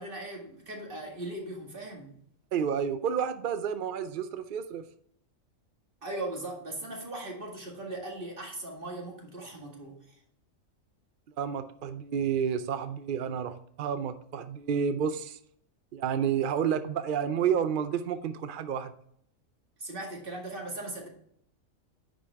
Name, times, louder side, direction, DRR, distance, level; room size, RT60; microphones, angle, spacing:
voice 1, 0.0-2.2 6.0-10.2 19.8-21.1, right 2 dB, 40° right, -1 dB, 2.2 m, -39 dB
voice 2, 2.5-4.9 11.4-15.4 15.9-18.9, right 7 dB, 65° right, 11 dB, 0.5 m, -30 dB
10.0 x 5.1 x 3.5 m, 0.67 s
omnidirectional pair, 1.4 m